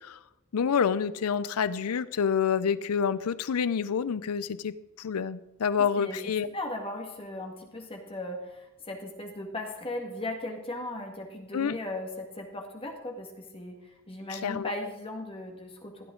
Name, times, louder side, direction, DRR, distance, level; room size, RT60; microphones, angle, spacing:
voice 1, 0.5-6.5 11.5-11.8 14.3-14.7, left 7 dB, 90° left, 16 dB, 0.5 m, -28 dB
voice 2, 5.8-16.1, left 1 dB, 25° left, 2 dB, 1.7 m, -38 dB
16.0 x 11.5 x 3.8 m, 0.98 s
head